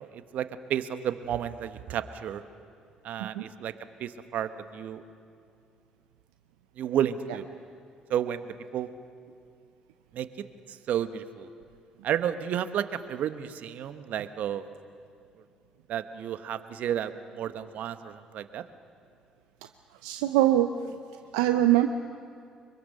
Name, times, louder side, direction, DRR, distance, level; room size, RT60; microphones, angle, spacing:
voice 1, 0.0-2.4 3.0-3.7 4.0-5.0 6.8-7.4 8.1-8.5 8.7-8.9 10.1-10.3 10.7-11.5 12.0-14.6 15.9-18.6, right 10 dB, 65° right, 11 dB, 1.1 m, -32 dB
voice 2, 20.0-20.7 21.3-21.9, right 14 dB, 85° right, 8 dB, 0.6 m, -22 dB
24.5 x 23.0 x 6.7 m, 2.3 s
hypercardioid pair, 55°, 3 cm